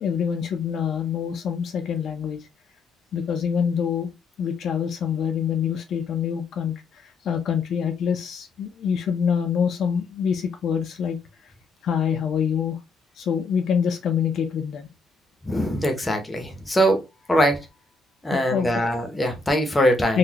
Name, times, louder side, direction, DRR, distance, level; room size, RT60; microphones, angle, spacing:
voice 1, 0.0-2.4 3.1-4.1 4.4-6.7 7.2-11.2 11.8-12.8 13.2-14.9 18.3-18.8 20.1-20.2, left 7 dB, 50° left, 0.5 m, -25 dB
voice 2, 15.4-17.0 17.3-17.6 18.2-20.2, equal, 10° left, 0.6 m, -22 dB
3.9 x 2.1 x 2.8 m
cardioid pair, 175°, 0 cm